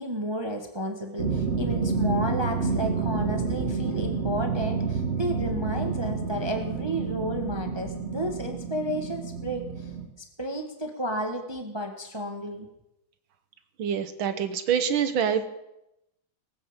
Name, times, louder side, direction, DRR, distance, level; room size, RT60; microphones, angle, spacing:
voice 1, 0.0-9.9 10.4-12.7, equal, 15° right, 4 dB, 1.2 m, -32 dB
sound 1, 1.2-10.1, right 5 dB, 35° right, 1.7 m, -29 dB
voice 2, 13.8-15.5, right 8 dB, 75° right, 10 dB, 1.8 m, -26 dB
19.0 x 8.5 x 7.2 m, 0.89 s
omnidirectional pair, 2.3 m